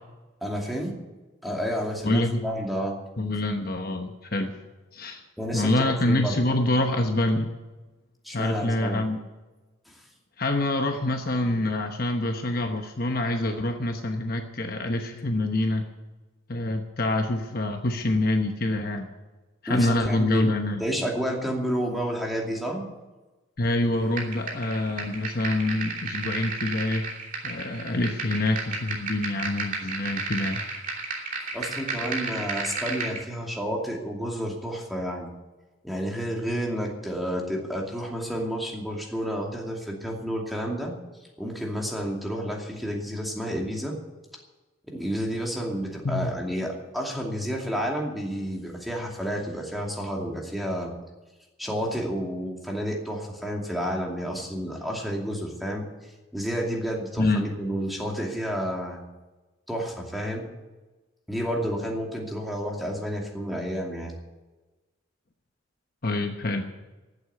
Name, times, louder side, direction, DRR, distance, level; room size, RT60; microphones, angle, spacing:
voice 1, 0.4-0.9 1.4-3.0 5.4-6.4 8.2-9.0 9.9-10.0 19.7-20.5 20.8-22.9 31.5-35.3 35.8-41.0 41.4-44.0 44.9-50.9 51.6-59.0 59.7-60.4 61.3-64.1, equal, ahead, -1 dB, 2.5 m, -30 dB
voice 2, 2.0-2.4 3.2-4.5 4.9-5.2 5.5-7.5 8.3-9.2 10.4-15.8 16.5-19.1 19.6-20.8 23.6-27.0 27.4-30.6 46.0-46.3 57.2-57.4 66.0-66.7, left 1 dB, 45° left, 5 dB, 1.0 m, -26 dB
sound 1, 24.2-33.2, right 3 dB, 40° right, 2.9 m, -33 dB
15.0 x 8.1 x 9.4 m, 1.2 s
head